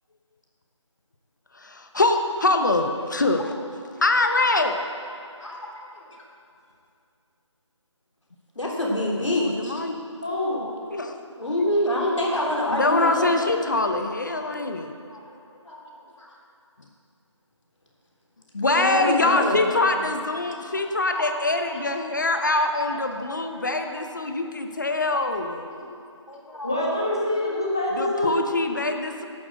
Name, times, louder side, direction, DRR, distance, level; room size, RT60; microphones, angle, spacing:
voice 1, 1.5-3.5 4.0-4.8 9.3-9.9 10.9-11.2 12.7-14.9 18.5-25.6 28.0-29.3, left 2 dB, 40° left, 5 dB, 0.9 m, -24 dB
voice 2, 5.4-6.2 8.5-9.7 11.4-13.3 14.4-14.5 15.1-15.3 15.6-16.3 18.7-19.7 20.0-20.1 20.6-21.3 21.7-21.8 22.3-22.5 23.2-23.8 25.1-25.3 25.7-25.8 26.3-26.8, left 1 dB, 75° left, -2 dB, 3.4 m, -28 dB
voice 3, 10.2-10.6 26.6-28.4, left 1 dB, 10° left, -4 dB, 0.6 m, -25 dB
11.5 x 7.7 x 7.9 m, 2.4 s
figure-of-eight pair, 175°, 16 cm